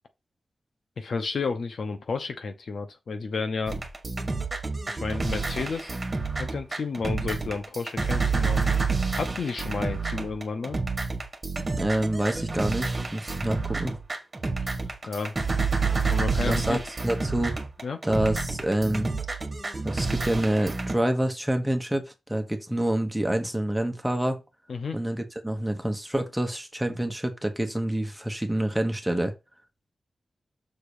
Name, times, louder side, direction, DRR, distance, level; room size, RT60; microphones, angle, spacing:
voice 1, 1.0-3.8 4.9-6.0 6.4-8.7 9.1-10.8 14.7-14.8 15.1-15.3 16.1-16.8 17.8-18.0 24.7-25.0, left 4 dB, 65° left, 0.9 m, -31 dB
sound 1, 3.7-21.0, right 4 dB, 30° right, 1.7 m, -29 dB
voice 2, 11.7-14.0 16.5-17.5 18.0-19.1 19.8-24.4 24.9-29.3, right 1 dB, 5° right, 1.3 m, -27 dB
6.8 x 3.8 x 5.0 m
wide cardioid pair, 140°, 0 cm